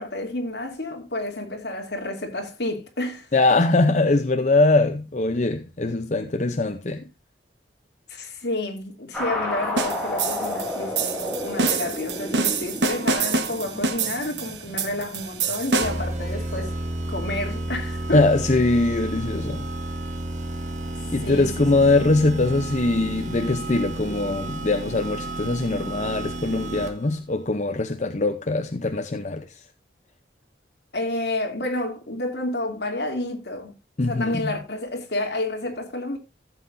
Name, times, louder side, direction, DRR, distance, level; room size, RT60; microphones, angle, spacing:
voice 1, 0.0-3.3 8.1-16.7 17.1-18.3 21.2-21.7 30.9-33.7 34.0-36.2, left 2 dB, 70° left, 2.9 m, -30 dB
voice 2, 3.3-7.0 18.1-19.7 21.1-29.6 34.0-34.5, left 2 dB, 45° left, 0.7 m, -22 dB
sound 1, 9.1-15.9, left 1 dB, 5° left, 3.3 m, -32 dB
sound 2, 9.8-16.1, right 4 dB, 85° right, 1.4 m, -26 dB
sound 3, 15.8-27.2, right 1 dB, 40° right, 1.6 m, -31 dB
15.0 x 7.6 x 2.6 m
head